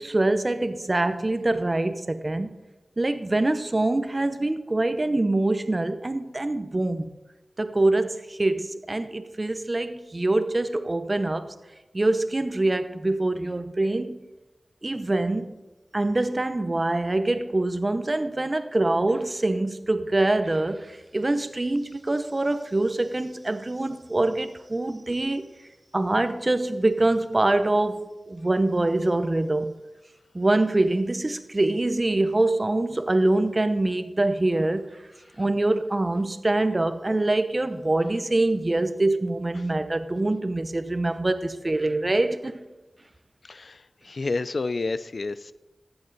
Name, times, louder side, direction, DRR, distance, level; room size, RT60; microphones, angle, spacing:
voice 1, 0.0-2.5 3.0-7.1 7.6-11.5 11.9-14.2 14.8-15.5 15.9-25.4 25.9-29.8 30.3-34.8 35.4-42.6, right 2 dB, 35° right, 0.8 m, -24 dB
voice 2, 43.4-45.5, left 3 dB, 65° left, 0.4 m, -30 dB
14.0 x 7.9 x 4.0 m
wide cardioid pair, 70°, 0 cm